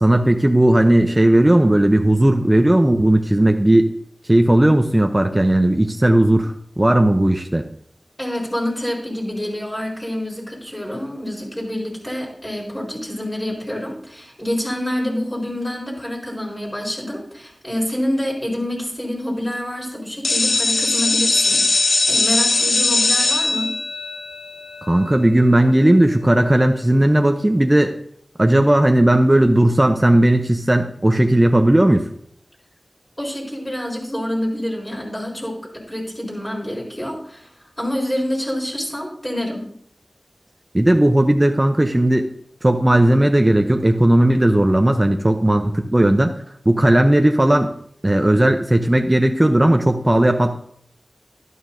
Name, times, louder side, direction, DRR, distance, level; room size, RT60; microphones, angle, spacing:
voice 1, 0.0-3.9 4.3-7.6 24.8-28.0 28.4-32.1 40.7-42.3 42.6-46.3 46.7-47.7 48.0-50.6, right 1 dB, 25° right, 5 dB, 0.7 m, -16 dB
voice 2, 8.2-23.7 33.2-37.5 37.8-39.7, left 1 dB, 20° left, -3 dB, 4.4 m, -27 dB
sound 1, 20.2-25.9, left 3 dB, 90° left, 0.9 m, -20 dB
11.5 x 11.0 x 2.7 m, 0.65 s
wide cardioid pair, 45°, 0 cm